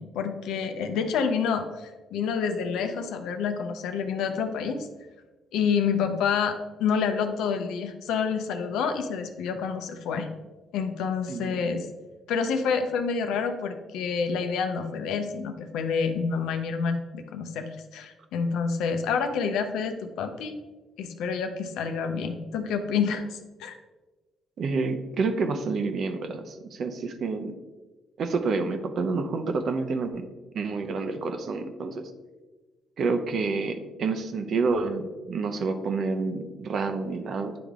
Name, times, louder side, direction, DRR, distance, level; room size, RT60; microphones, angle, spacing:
voice 1, 0.0-4.9 5.5-10.3 10.7-11.9 12.3-20.5 21.0-23.8, left 6 dB, 90° left, 6 dB, 0.7 m, -28 dB
voice 2, 11.3-11.6 24.6-27.5 28.2-30.3 30.5-32.1 33.0-37.6, right 4 dB, 60° right, 7 dB, 0.7 m, -28 dB
9.6 x 3.4 x 3.6 m, 1.2 s
cardioid pair, 90°, 0 cm